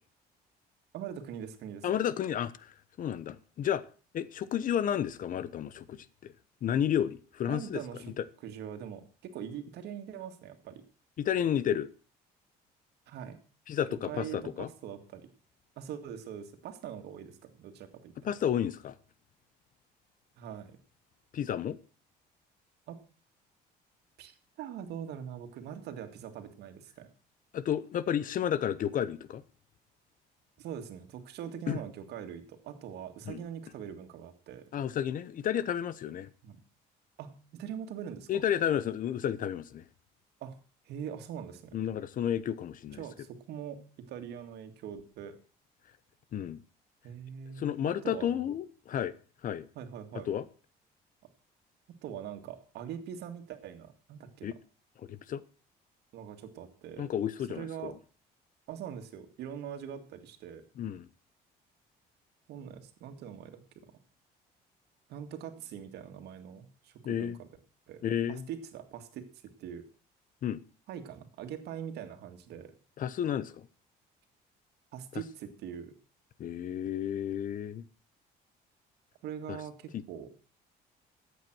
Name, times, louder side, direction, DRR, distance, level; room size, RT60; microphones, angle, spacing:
voice 1, 0.9-1.9 7.5-8.1 8.4-10.8 13.1-13.4 14.1-15.3 15.8-18.1 20.4-20.8 22.9-23.0 24.2-27.1 30.6-34.7 36.4-36.6 37.2-38.4 40.4-40.6 40.9-41.8 43.0-45.4 47.0-48.5 49.8-50.3 52.0-54.5 56.1-57.1 57.5-57.9 58.7-60.6 62.5-63.6 65.1-67.5 67.9-68.0 68.3-69.2 69.6-69.8 70.9-72.7 74.9-75.9 79.2-80.3, right 9 dB, 75° right, 2.2 m, -42 dB
voice 2, 1.8-3.8 4.1-6.3 6.6-8.2 11.2-11.9 13.7-14.7 18.2-18.9 21.3-21.8 27.5-29.4 31.7-31.8 33.3-33.4 34.7-36.3 38.3-39.8 41.7-43.0 46.3-46.6 47.6-49.1 49.4-49.7 50.3-50.4 54.4-54.6 55.1-55.4 57.0-57.9 60.8-61.1 67.0-67.4 68.0-68.5 70.4-70.6 73.0-73.7 76.4-77.8 79.5-79.6 79.9-80.0, left 9 dB, 55° left, 0.9 m, -31 dB
13.5 x 8.4 x 6.2 m
cardioid pair, 110°, 17 cm